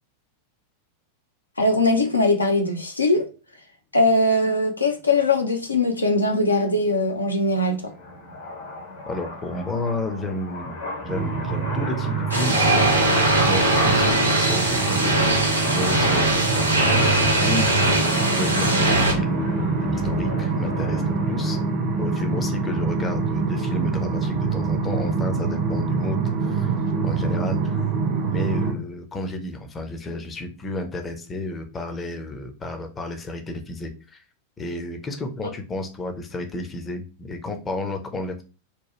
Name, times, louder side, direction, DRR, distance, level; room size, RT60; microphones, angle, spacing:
voice 1, 1.6-3.2 3.9-7.8, left 2 dB, 80° left, 0.6 m, -21 dB
sound 1, 6.4-21.6, left 2 dB, 65° left, 1.5 m, -34 dB
voice 2, 9.1-18.0 18.3-21.6 22.0-26.8 27.0-27.8 28.3-34.2 34.6-38.4, left 2 dB, 20° left, 0.5 m, -32 dB
sound 2, 11.1-28.7, right 4 dB, 40° right, 0.6 m, -25 dB
sound 3, 12.3-19.1, right 2 dB, 85° right, 0.7 m, -21 dB
2.9 x 2.2 x 3.0 m
figure-of-eight pair, 90°, 0 cm